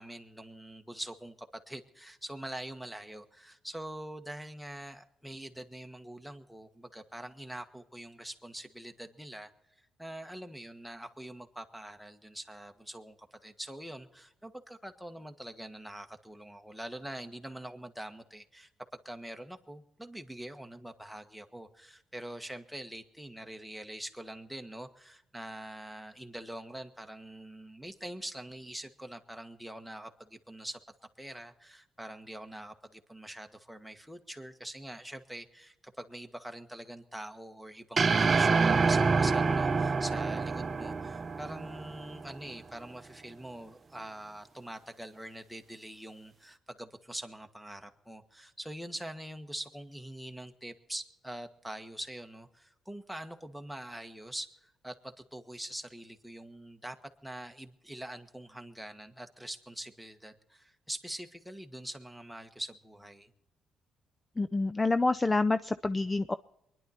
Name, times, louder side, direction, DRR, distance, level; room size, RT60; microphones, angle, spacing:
voice 1, 0.0-9.5 9.8-18.7 19.0-30.8 31.2-57.0 57.2-63.3, right 1 dB, ahead, 5 dB, 1.5 m, -44 dB
sound 1, 38.0-42.4, right 4 dB, 40° right, 0.7 m, -27 dB
voice 2, 64.4-66.3, left 3 dB, 20° left, 13 dB, 0.4 m, -27 dB
23.5 x 11.0 x 4.3 m, 0.82 s
cardioid pair, 90°, 0 cm